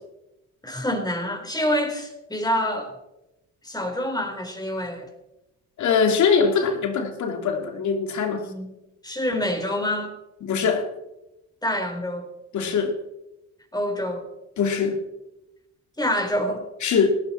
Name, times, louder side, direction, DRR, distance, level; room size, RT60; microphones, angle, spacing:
voice 1, 0.6-2.9 3.6-5.1 8.4-8.7 9.0-10.1 11.6-12.3 13.7-14.3 16.0-16.6, equal, 15° left, 4 dB, 4.1 m, -26 dB
voice 2, 5.8-8.4 10.4-10.9 12.5-12.9 14.6-15.0 16.8-17.1, left 6 dB, 70° left, 6 dB, 2.5 m, -22 dB
18.0 x 15.0 x 4.4 m, 0.94 s
cardioid pair, 90°, 30 cm